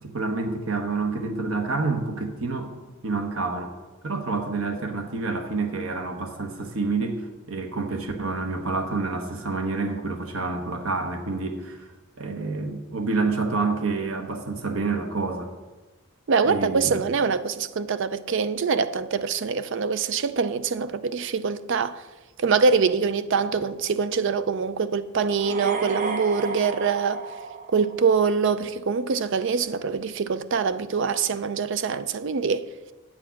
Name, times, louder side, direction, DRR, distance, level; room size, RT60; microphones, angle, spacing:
voice 1, 0.0-2.7 3.0-3.7 4.0-15.5 16.4-17.0, right 3 dB, 90° right, 1.0 m, -28 dB
voice 2, 16.3-22.0 22.4-27.2 27.7-32.7, right 5 dB, 60° right, 0.5 m, -24 dB
sound 1, 25.3-28.3, right 4 dB, 40° right, 1.0 m, -32 dB
8.8 x 7.3 x 5.7 m
head